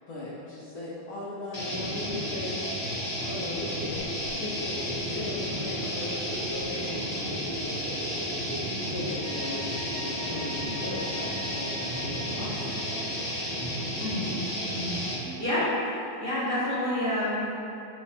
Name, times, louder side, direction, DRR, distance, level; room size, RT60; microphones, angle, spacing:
voice 1, 0.1-2.7 3.2-7.7 8.9-13.2, left 2 dB, 70° left, -9 dB, 0.8 m, -38 dB
sound 1, 1.5-15.2, equal, 85° left, 0.3 m, -32 dB
sound 2, 3.5-10.3 10.6-10.7, right 1 dB, 45° left, 1.2 m, -41 dB
sound 3, 8.9-14.0, right 1 dB, 90° right, 1.4 m, -44 dB
voice 2, 14.0-14.4 14.7-17.5, left 1 dB, 10° right, -15 dB, 1.2 m, -29 dB
3.3 x 2.4 x 4.2 m, 2.8 s
omnidirectional pair, 2.2 m